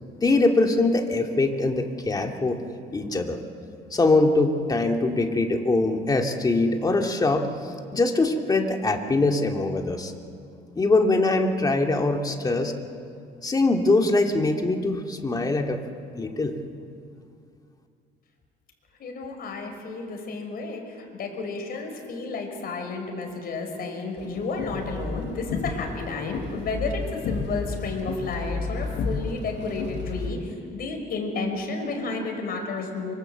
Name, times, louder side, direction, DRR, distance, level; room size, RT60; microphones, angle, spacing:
voice 1, 0.2-2.6 2.9-3.4 3.9-10.1 10.8-12.7 13.4-15.8 16.2-16.5, left 2 dB, 20° left, 3 dB, 2.2 m, -23 dB
voice 2, 19.0-33.1, left 3 dB, 55° left, 3 dB, 5.2 m, -32 dB
sound 1, 24.2-30.3, left 4 dB, 75° left, 5.6 m, -32 dB
24.5 x 24.5 x 7.9 m, 2.3 s
cardioid pair, 140°, 18 cm